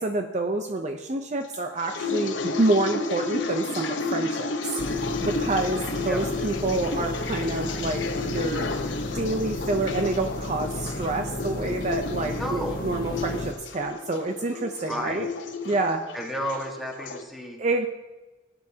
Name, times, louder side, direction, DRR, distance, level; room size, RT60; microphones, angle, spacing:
voice 1, 0.0-4.5 5.2-8.7 9.1-15.3 15.6-16.0 17.6-17.9, right 2 dB, 40° right, 5 dB, 0.6 m, -27 dB
sound 1, 1.5-17.2, left 3 dB, 80° left, 0.9 m, -32 dB
sound 2, 4.8-13.5, left 1 dB, 50° left, 1.1 m, -33 dB
voice 2, 12.4-12.8 14.9-15.2 16.1-17.6, equal, ahead, 0 dB, 1.5 m, -32 dB
17.5 x 9.5 x 2.8 m, 1.1 s
head